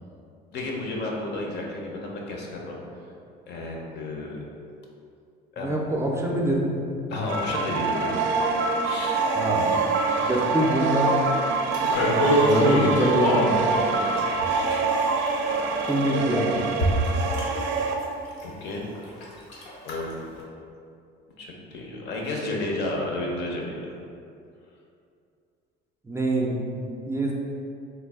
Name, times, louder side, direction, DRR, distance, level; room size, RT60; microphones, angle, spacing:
voice 1, 0.5-2.8 3.5-4.4 5.5-5.8 7.1-8.2 8.8-9.3 11.8-12.1 13.8-14.1 18.4-18.8 19.8-20.3 21.4-23.9, left 2 dB, 60° left, -1 dB, 0.7 m, -32 dB
voice 2, 5.6-6.9 9.3-9.7 10.3-11.1 12.4-13.5 15.8-16.6 26.0-27.3, right 1 dB, 15° right, -2 dB, 0.4 m, -25 dB
sound 1, 7.3-17.9, right 4 dB, 70° right, 0.4 m, -25 dB
sound 2, 11.7-13.5 14.2-15.0 15.9-16.0 16.7-17.4 17.8-18.0 18.4-18.5 18.9-19.2 19.5-19.9 20.4-20.5, left 1 dB, 85° left, 0.8 m, -23 dB
3.2 x 2.3 x 3.5 m, 2.5 s
supercardioid pair, 90°, 20 cm